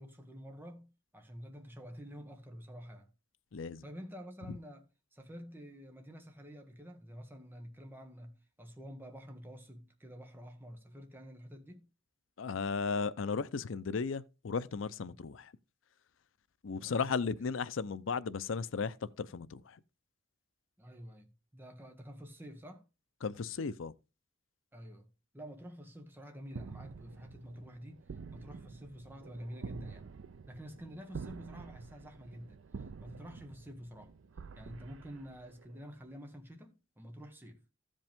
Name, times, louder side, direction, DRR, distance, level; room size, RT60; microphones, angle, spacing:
voice 1, 0.0-3.1 3.8-4.9 5.1-11.9 15.0-15.2 16.8-17.5 20.8-22.8 24.7-25.1 25.3-28.0 28.3-30.1 30.5-34.1 34.6-37.6, equal, 10° right, 1.4 m, -49 dB
voice 2, 3.5-3.8 12.4-15.5 16.6-19.6 23.2-23.9, left 5 dB, 85° left, 0.5 m, -35 dB
sound 1, 26.5-35.8, right 5 dB, 80° right, 0.5 m, -48 dB
15.0 x 5.3 x 3.5 m
head